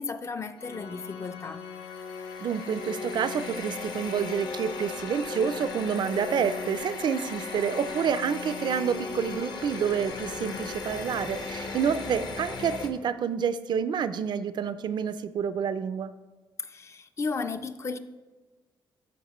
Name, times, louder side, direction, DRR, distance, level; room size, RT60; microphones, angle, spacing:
voice 1, 0.0-1.6 16.6-18.0, left 4 dB, 35° left, 0.4 m, -34 dB
Organ, 0.6-11.4, left 5 dB, 80° left, 0.6 m, -40 dB
sound 1, 1.6-12.9, left 4 dB, 55° left, 0.9 m, -38 dB
voice 2, 2.4-16.1, right 7 dB, 60° right, 0.4 m, -28 dB
13.0 x 4.7 x 3.0 m
cardioid pair, 120°, 9 cm